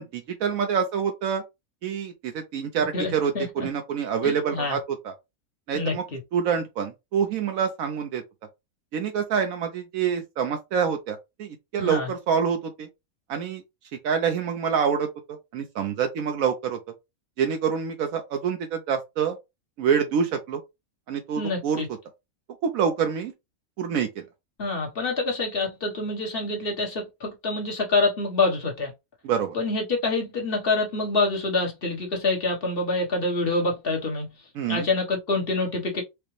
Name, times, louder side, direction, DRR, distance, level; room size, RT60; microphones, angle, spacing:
voice 1, 0.0-1.4 1.8-5.1 5.7-6.0 6.3-8.2 8.9-12.9 13.3-13.6 14.0-16.8 17.4-19.4 19.8-20.6 21.1-21.8 22.6-23.3 23.8-24.2 29.2-29.6 34.6-34.9, right 7 dB, 80° right, 1.0 m, -26 dB
voice 2, 2.9-3.5 4.2-4.8 5.7-6.2 11.8-12.1 21.4-21.9 24.6-28.9 29.5-34.3 34.7-36.0, left 3 dB, 45° left, 1.3 m, -26 dB
4.8 x 2.1 x 3.1 m
omnidirectional pair, 1.5 m